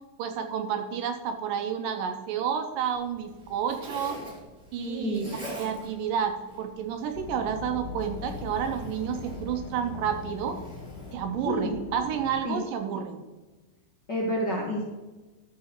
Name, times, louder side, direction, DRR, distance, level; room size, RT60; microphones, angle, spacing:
voice 1, 0.2-4.2 4.7-10.6 11.1-13.2, right 8 dB, 75° right, 6 dB, 2.2 m, -30 dB
Zipper (clothing), 2.9-11.1, equal, 10° right, 2.2 m, -46 dB
voice 2, 4.8-5.5 11.4-11.8 12.4-12.6 14.1-14.8, left 1 dB, 65° left, -1 dB, 1.0 m, -30 dB
sound 1, 7.1-12.4, left 6 dB, 80° left, 2.7 m, -41 dB
13.0 x 6.8 x 4.4 m, 1.2 s
omnidirectional pair, 4.2 m